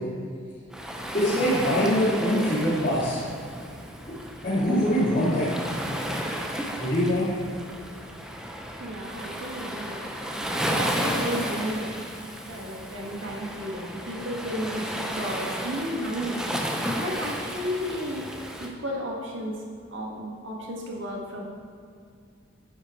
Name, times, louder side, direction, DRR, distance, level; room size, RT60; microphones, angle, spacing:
Waves surf, 0.7-18.7, equal, 5° right, 0.7 m, -33 dB
voice 1, 1.1-3.2 4.1-4.2 4.4-5.5 6.8-7.3, equal, 40° left, -13 dB, 2.7 m, -23 dB
voice 2, 8.8-10.1 10.7-12.0 12.4-16.4 17.0-18.3 18.6-19.6 19.9-21.4, equal, 75° right, -1 dB, 1.9 m, -33 dB
10.0 x 8.2 x 4.5 m, 2.3 s
head